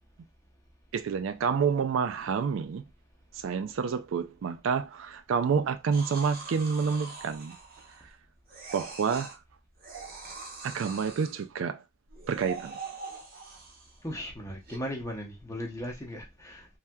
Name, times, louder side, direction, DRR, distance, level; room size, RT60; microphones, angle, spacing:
voice 1, 0.9-2.8 3.3-7.6 8.7-9.4 10.6-11.8 12.3-12.8, right 6 dB, 70° right, 0.3 m, -28 dB
sound 1, 5.9-8.1 8.5-9.4 9.8-11.4 12.1-14.0 14.7-14.8, right 4 dB, 45° right, 0.7 m, -43 dB
voice 2, 14.0-16.7, equal, 15° left, 0.7 m, -37 dB
3.3 x 2.7 x 2.2 m
head